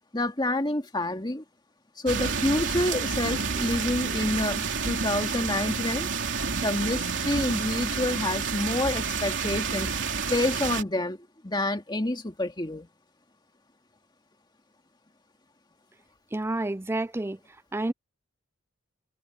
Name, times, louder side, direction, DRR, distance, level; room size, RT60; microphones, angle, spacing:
voice 1, 0.1-1.4 2.0-6.1 6.6-9.9 10.3-11.2 11.4-12.9, left 1 dB, 20° left, 2.2 m, -28 dB
sound 1, 2.1-10.8, right 5 dB, 65° right, 3.6 m, -29 dB
voice 2, 16.3-17.4 17.7-17.9, right 2 dB, 10° right, 0.4 m, -29 dB
head